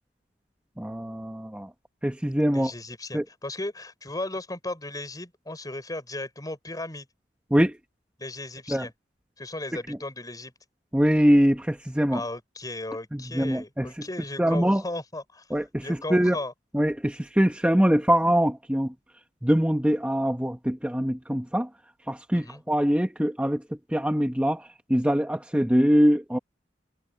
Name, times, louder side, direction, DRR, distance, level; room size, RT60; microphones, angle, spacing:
voice 1, 0.8-1.7 2.0-2.7 3.1-3.2 7.5-7.7 8.7-8.8 10.9-12.2 13.1-13.9 14.4-14.8 15.5-15.8 16.1-16.4 16.7-18.9 19.4-21.7 22.1-23.6 23.9-24.6 24.9-26.4, equal, 5° right, 0.9 m, -23 dB
voice 2, 2.5-7.1 8.2-8.9 9.4-10.5 12.1-16.5 22.3-22.6, left 2 dB, 20° left, 4.4 m, -36 dB
head